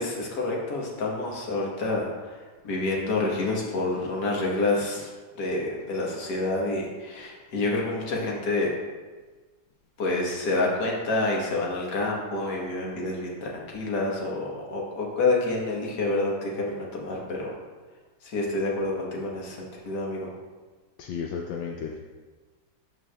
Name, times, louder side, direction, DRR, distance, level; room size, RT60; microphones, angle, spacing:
voice 1, 0.0-5.1 5.4-8.7 10.0-17.5 18.2-20.3, left 2 dB, 60° left, -2 dB, 1.8 m, -28 dB
voice 2, 21.0-22.0, left 6 dB, 85° left, 0 dB, 1.3 m, -33 dB
13.0 x 4.7 x 2.3 m, 1.3 s
omnidirectional pair, 2.0 m